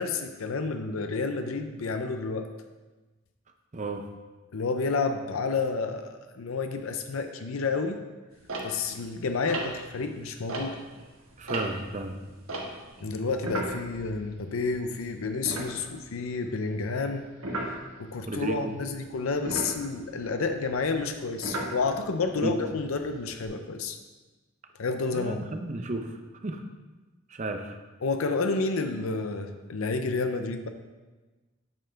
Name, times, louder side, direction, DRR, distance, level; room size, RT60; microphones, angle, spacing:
voice 1, 0.0-2.5 4.5-8.0 8.6-10.8 13.0-17.3 17.6-24.0 24.8-25.4 28.0-30.7, left 4 dB, 80° left, 7 dB, 0.6 m, -30 dB
voice 2, 3.7-4.1 11.4-12.2 18.3-18.7 22.4-22.6 25.1-26.6 27.3-27.8, right 2 dB, 35° right, 6 dB, 0.6 m, -33 dB
sound 1, 8.4-11.0 11.3-14.8 15.1-15.2 15.5-16.3 17.4-17.8 19.3-22.2 22.8-23.5, right 2 dB, 85° right, 1.3 m, -36 dB
8.9 x 5.7 x 3.4 m, 1.2 s
head